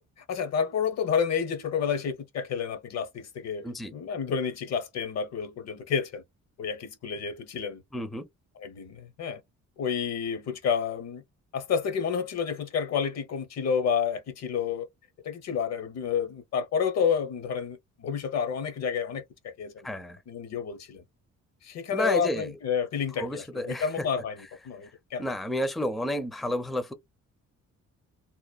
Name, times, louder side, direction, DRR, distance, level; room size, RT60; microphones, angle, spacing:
voice 1, 0.2-6.2 6.6-7.8 8.6-9.4 9.8-11.2 11.5-14.9 15.2-19.9 20.3-21.0 21.6-25.3, left 7 dB, 60° left, 0.7 m, -30 dB
voice 2, 7.9-8.3 19.8-20.2 21.9-22.5 23.2-24.1 24.8-24.9 25.2-26.9, left 1 dB, ahead, 0.4 m, -31 dB
2.8 x 2.1 x 2.3 m
cardioid pair, 90°, 30 cm